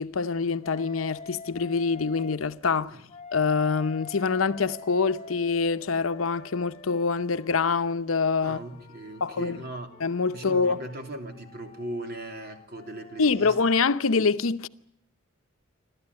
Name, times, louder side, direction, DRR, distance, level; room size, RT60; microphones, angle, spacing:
voice 1, 0.0-3.0 3.3-8.6 9.2-9.6 10.0-10.8 13.2-14.7, left 4 dB, 75° left, 0.8 m, -25 dB
Wind instrument woodwind instrument, 0.6-2.4 3.1-7.9 8.5-13.8, left 4 dB, 30° left, 1.7 m, -46 dB
voice 2, 8.4-9.9 10.3-13.6, right 1 dB, 50° right, 3.2 m, -38 dB
27.5 x 13.0 x 9.8 m
head